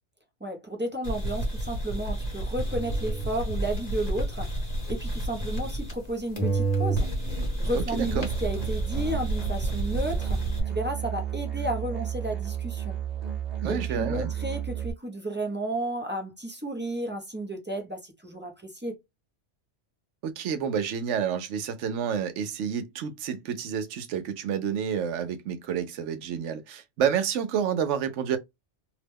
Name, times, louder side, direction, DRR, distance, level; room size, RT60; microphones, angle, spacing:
voice 1, 0.4-7.1 7.6-13.0 13.6-19.0, right 1 dB, 15° right, 0.4 m, -33 dB
sound 1, 1.0-6.1 6.4-10.6, right 1 dB, 35° left, 1.1 m, -30 dB
Musical instrument, 8.0-14.9, right 10 dB, 55° right, 1.1 m, -32 dB
voice 2, 13.6-14.3 20.2-28.4, right 8 dB, 75° right, 0.9 m, -29 dB
2.9 x 2.1 x 3.2 m
omnidirectional pair, 1.3 m